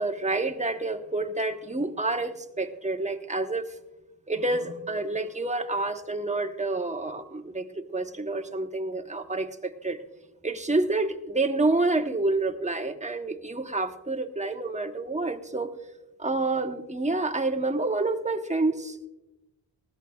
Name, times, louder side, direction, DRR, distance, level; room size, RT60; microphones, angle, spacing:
voice 1, 0.0-3.8 4.3-10.0 10.4-15.7 16.2-19.1, right 2 dB, 15° right, 6 dB, 1.0 m, -28 dB
19.0 x 15.0 x 2.4 m, 1.0 s
cardioid pair, 75°, 45 cm